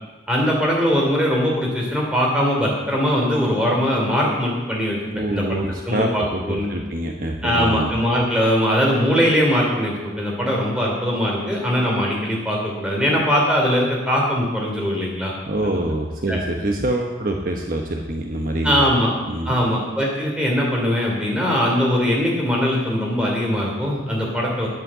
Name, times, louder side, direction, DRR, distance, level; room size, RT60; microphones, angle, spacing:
voice 1, 0.3-5.0 5.3-5.4 5.9-6.7 7.4-15.3 15.6-15.8 16.3-16.4 18.6-19.1 19.4-24.7, equal, 5° right, -3 dB, 3.0 m, -21 dB
voice 2, 5.1-7.9 15.5-18.8 19.3-19.6, right 1 dB, 50° right, 2 dB, 1.0 m, -25 dB
10.5 x 8.3 x 7.4 m, 1.2 s
head